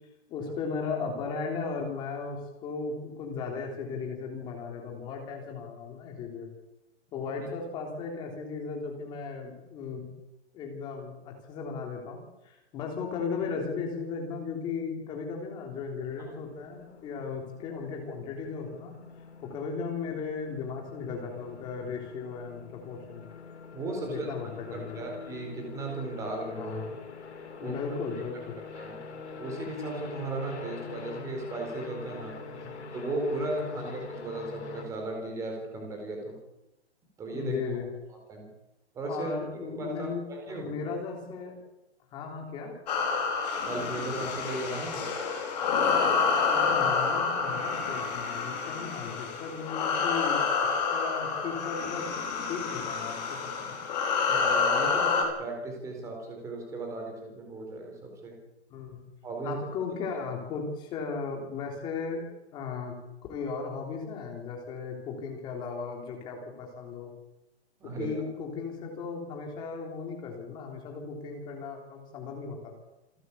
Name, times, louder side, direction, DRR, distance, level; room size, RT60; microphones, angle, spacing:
voice 1, 0.3-6.5 7.1-10.1 10.5-19.0 19.4-23.3 24.0-25.1 26.6-27.0 27.6-28.6 32.6-32.8 33.7-33.9 37.3-37.9 39.1-40.2 40.5-41.6 42.1-42.7 46.5-52.1 52.5-53.7 58.7-59.0 59.4-62.2 62.5-63.0 63.3-67.1 67.8-72.7, left 5 dB, 15° left, 1 dB, 3.5 m, -36 dB
sound 1, 16.1-34.8, left 5 dB, 80° left, 6.6 m, -44 dB
voice 2, 23.7-24.3 24.7-26.8 27.6-27.8 28.7-29.0 29.4-32.4 32.9-36.4 37.2-37.8 38.3-38.5 38.9-39.3 39.8-40.7 43.6-45.1 54.3-58.4 59.2-59.6 67.8-68.2, right 2 dB, 10° right, 1 dB, 4.2 m, -36 dB
Ominous Heavy Breathing, 42.9-55.2, left 5 dB, 40° left, 5.5 m, -28 dB
28.0 x 12.5 x 8.5 m, 0.96 s
hypercardioid pair, 180°, 34 cm